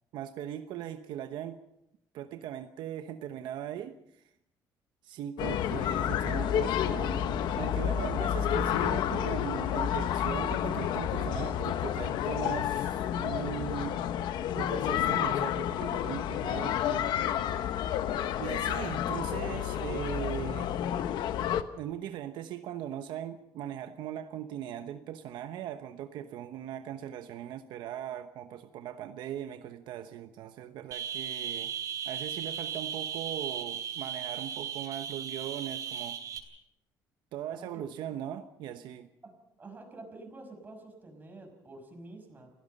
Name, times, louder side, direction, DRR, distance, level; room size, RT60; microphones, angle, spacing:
voice 1, 0.1-1.6 2.1-4.2 5.0-14.0 14.5-17.0 18.4-20.7 21.8-31.7 32.0-36.2 37.3-39.1, right 10 dB, 80° right, 8 dB, 1.0 m, -39 dB
sound 1, 5.4-21.6, left 10 dB, 75° left, 1.1 m, -30 dB
sound 2, 30.9-36.4, right 8 dB, 50° right, 3.0 m, -36 dB
voice 2, 39.2-42.5, right 2 dB, 20° right, 4 dB, 5.6 m, -48 dB
29.0 x 17.0 x 5.4 m, 0.80 s
cardioid pair, 130°, 8 cm